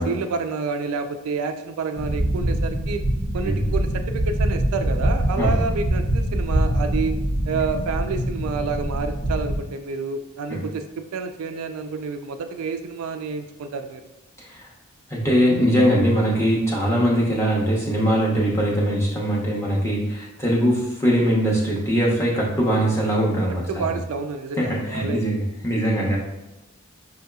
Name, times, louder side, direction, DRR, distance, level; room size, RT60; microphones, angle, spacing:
voice 1, 0.0-3.0 3.3-7.1 7.5-10.8 11.1-14.0 23.7-25.2, right 4 dB, 70° right, 7 dB, 0.3 m, -29 dB
sound 1, 1.9-9.6, right 1 dB, 65° left, 1.4 m, -24 dB
voice 2, 15.1-24.0 24.6-26.2, equal, 10° left, -5 dB, 0.8 m, -21 dB
5.6 x 2.7 x 2.3 m, 1.0 s
head